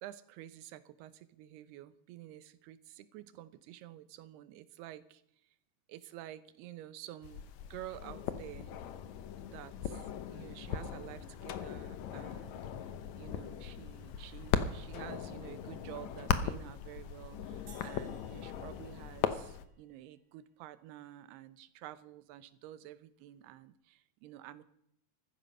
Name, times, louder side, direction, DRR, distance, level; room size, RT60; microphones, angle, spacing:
voice 1, 0.0-5.2 5.9-7.4 7.7-8.7 9.5-24.6, right 13 dB, 90° right, 14 dB, 2.9 m, -50 dB
sound 1, 7.2-19.7, left 8 dB, 85° left, 1.6 m, -38 dB
sound 2, 17.7-20.1, right 5 dB, 70° right, 5.4 m, -60 dB
15.0 x 13.5 x 5.4 m, 0.72 s
omnidirectional pair, 4.5 m